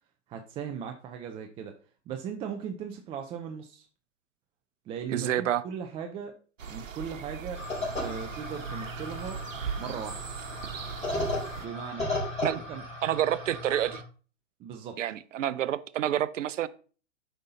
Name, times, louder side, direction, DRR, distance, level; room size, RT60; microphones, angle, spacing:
voice 1, 0.3-1.7 2.1-3.9 4.9-6.3 6.7-7.6 8.0-9.4 9.8-10.2 11.6-12.1 12.5-12.8 14.6-15.0, right 7 dB, 15° right, 0.4 m, -38 dB
voice 2, 5.1-5.6 12.4-12.6 13.0-14.0 15.0-16.7, right 11 dB, 75° right, 0.7 m, -28 dB
sound 1, 6.6-11.7, right 6 dB, 90° right, 1.1 m, -39 dB
sound 2, 7.5-14.0, left 2 dB, 15° left, 4.6 m, -35 dB
7.9 x 5.6 x 3.9 m
hypercardioid pair, 125°, 38 cm